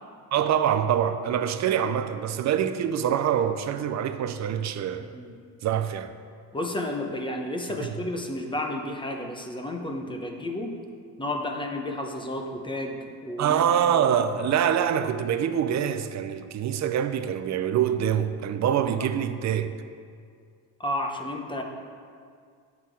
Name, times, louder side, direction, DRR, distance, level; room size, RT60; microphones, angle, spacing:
voice 1, 0.3-5.1 5.6-6.1 7.8-7.9 13.4-19.7, right 9 dB, 45° right, 0.6 m, -25 dB
voice 2, 5.0-5.4 6.5-10.8 11.2-14.0 14.5-14.6 19.0-19.1 20.8-21.6, left 1 dB, 10° left, 0.9 m, -32 dB
8.9 x 6.0 x 4.7 m
cardioid pair, 105°, 40 cm